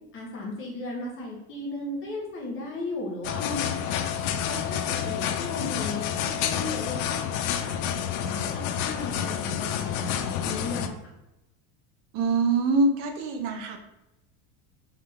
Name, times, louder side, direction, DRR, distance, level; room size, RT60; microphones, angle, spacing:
voice 1, 0.1-4.0 4.5-7.7 8.2-11.0, left 2 dB, 30° left, -2 dB, 1.0 m, -36 dB
sound 1, 3.2-10.9, left 9 dB, 90° left, 0.6 m, -29 dB
voice 2, 12.1-13.8, right 3 dB, 60° right, 4 dB, 0.7 m, -24 dB
3.6 x 3.2 x 3.4 m, 0.93 s
cardioid pair, 160°, 43 cm